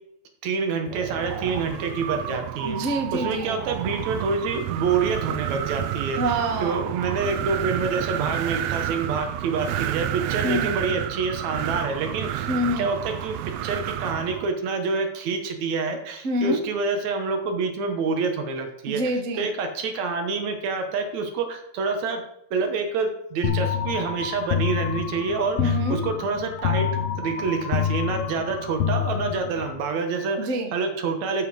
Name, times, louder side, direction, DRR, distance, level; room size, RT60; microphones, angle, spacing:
voice 1, 0.4-2.8 3.1-12.5 12.8-19.0 19.4-22.2 22.5-30.4 30.7-31.5, right 4 dB, 70° right, 5 dB, 2.4 m, -27 dB
Wind, 0.9-14.5, right 12 dB, 90° right, 1.4 m, -30 dB
voice 2, 2.6-3.6 6.2-6.8 10.4-10.8 12.5-12.9 16.2-16.6 18.9-19.5 25.6-26.0 30.4-30.7, right 1 dB, 50° right, 3 dB, 0.9 m, -26 dB
sound 1, 23.4-29.8, left 8 dB, 60° left, 1.7 m, -27 dB
13.0 x 5.2 x 5.2 m, 0.76 s
omnidirectional pair, 3.4 m